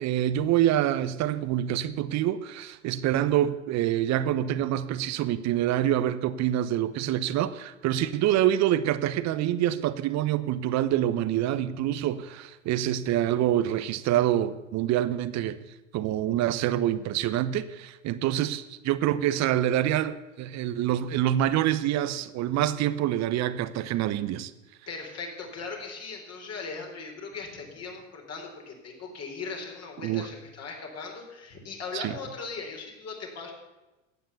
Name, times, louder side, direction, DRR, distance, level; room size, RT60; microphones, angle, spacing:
voice 1, 0.0-15.6 15.9-24.5 30.0-30.3 31.9-32.2, right 12 dB, 45° right, 15 dB, 0.9 m, -26 dB
voice 2, 24.9-33.5, left 4 dB, 40° left, 1 dB, 4.2 m, -39 dB
15.0 x 9.2 x 7.1 m, 1.1 s
hypercardioid pair, 75°, 38 cm